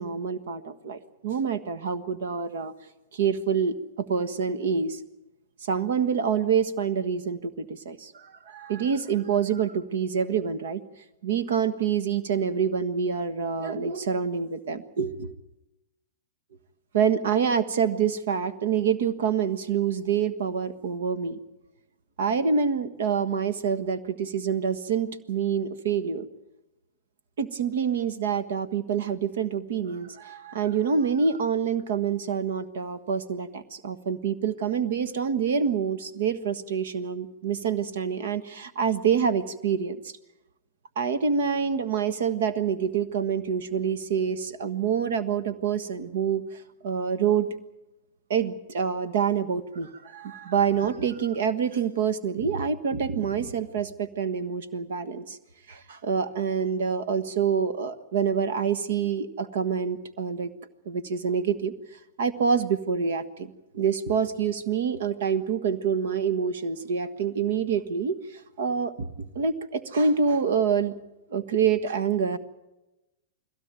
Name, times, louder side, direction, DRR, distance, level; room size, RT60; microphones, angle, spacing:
voice 1, 0.0-2.7 3.1-5.0 5.7-10.8 11.2-15.3 16.9-21.4 22.2-26.2 27.4-40.1 40.9-46.4 46.8-47.5 48.3-55.4 55.7-60.5 60.8-61.7 62.2-70.9 71.3-72.4, right 6 dB, 70° right, 12 dB, 1.4 m, -26 dB
21.0 x 16.5 x 9.0 m, 0.98 s
hypercardioid pair, 120°, 0 cm